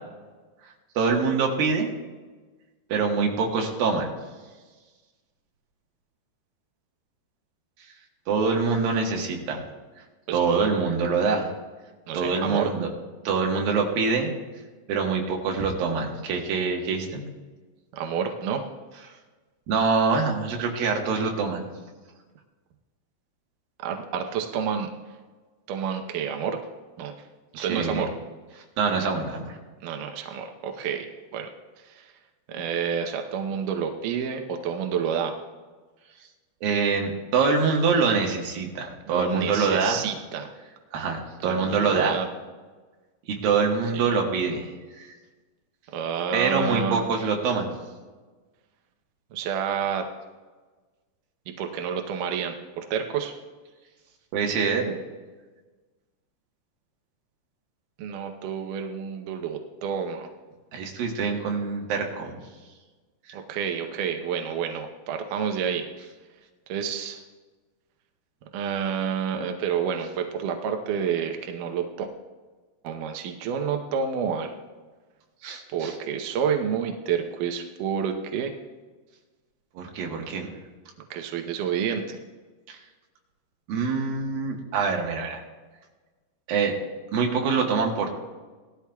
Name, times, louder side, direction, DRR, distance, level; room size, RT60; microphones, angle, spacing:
voice 1, 1.0-1.9 2.9-4.1 8.3-9.6 10.3-11.5 12.1-12.9 13.2-14.3 14.9-17.2 19.7-21.7 27.6-28.0 28.8-29.6 36.6-40.0 40.9-42.1 43.3-44.7 45.0-45.1 46.3-47.7 54.3-54.9 60.7-62.4 75.4-75.9 79.7-80.6 82.7-82.8 83.7-85.4 86.5-86.7 87.1-88.1, right 5 dB, 65° right, 1 dB, 2.9 m, -25 dB
voice 2, 12.1-12.7 17.9-18.6 23.8-24.9 25.7-26.6 27.0-27.1 27.6-28.1 29.8-31.5 31.9-32.1 32.5-35.3 39.1-40.5 41.4-42.3 43.9-44.1 45.9-47.1 49.3-50.1 51.6-53.3 58.0-60.3 63.3-65.9 66.7-67.2 68.5-72.1 72.8-74.5 75.7-78.5 81.1-82.2, right 7 dB, 80° right, 4 dB, 1.8 m, -29 dB
18.5 x 13.0 x 2.3 m, 1.3 s
omnidirectional pair, 4.9 m